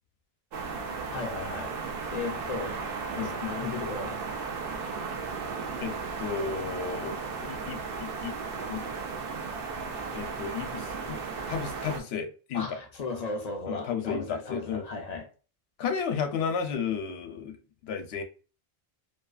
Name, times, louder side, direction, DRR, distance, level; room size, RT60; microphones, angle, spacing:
sound 1, 0.5-12.0, right 5 dB, 70° right, 0.7 m, -35 dB
voice 1, 1.1-1.8 2.1-2.9 3.2-4.5 12.5-15.3, left 4 dB, 50° left, 0.5 m, -36 dB
voice 2, 5.8-8.4 8.7-8.8 10.1-11.2 11.5-12.8 13.7-14.8 15.8-17.6 17.8-18.2, left 6 dB, 80° left, 0.8 m, -33 dB
2.6 x 2.3 x 2.3 m
omnidirectional pair, 1.0 m